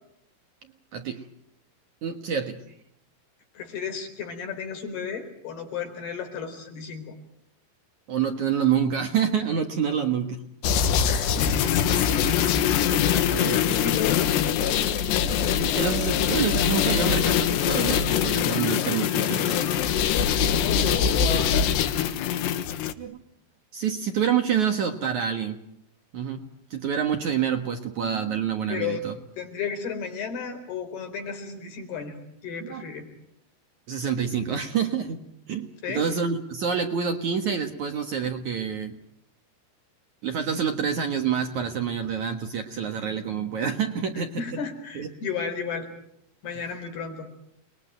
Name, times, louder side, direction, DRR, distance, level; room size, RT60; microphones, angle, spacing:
voice 1, 0.9-1.3 2.0-2.8 8.1-10.4 13.3-13.8 15.6-19.8 23.0-23.2 23.7-25.6 26.1-26.4 26.7-29.1 32.6-32.9 33.9-39.0 40.2-44.6 45.0-45.1, right 7 dB, 55° right, 5 dB, 2.4 m, -27 dB
voice 2, 3.6-7.2 11.0-11.6 13.1-14.3 20.5-21.7 28.7-29.1 29.4-32.1 32.4-33.1 35.8-36.1 44.4-45.9 46.4-47.3, left 6 dB, 65° left, 6 dB, 6.2 m, -33 dB
sound 1, 10.6-22.9, left 8 dB, 80° left, 3.5 m, -23 dB
29.5 x 22.0 x 9.2 m, 0.76 s
omnidirectional pair, 4.9 m